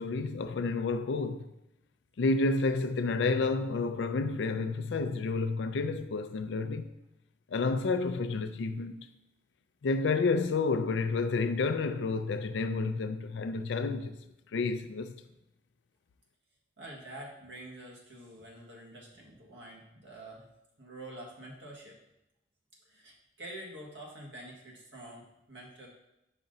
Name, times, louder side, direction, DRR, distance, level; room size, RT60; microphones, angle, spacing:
voice 1, 0.0-1.5 2.2-6.9 7.5-9.0 9.8-14.2 14.5-15.1, left 3 dB, 80° left, 0.4 m, -30 dB
voice 2, 16.8-20.5 20.8-22.0 22.8-25.9, right 1 dB, 85° right, 1.5 m, -47 dB
5.8 x 5.3 x 3.9 m
head